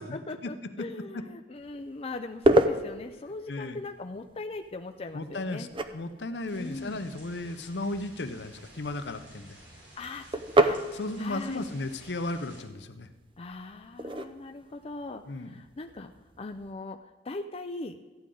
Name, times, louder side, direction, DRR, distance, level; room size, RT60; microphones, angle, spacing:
voice 1, 0.0-5.7 6.5-7.0 10.0-10.8 11.2-11.6 13.4-16.1 16.4-18.0, left 3 dB, 35° left, 5 dB, 0.5 m, -40 dB
sound 1, 1.6-16.7, right 1 dB, 30° right, 0.6 m, -32 dB
voice 2, 3.5-3.8 5.1-5.7 5.9-9.6 10.9-13.1 15.2-15.5, left 2 dB, 70° left, 9 dB, 0.8 m, -35 dB
sound 2, 6.5-12.6, right 1 dB, 75° right, 3.6 m, -52 dB
14.0 x 9.8 x 3.8 m, 1.3 s
head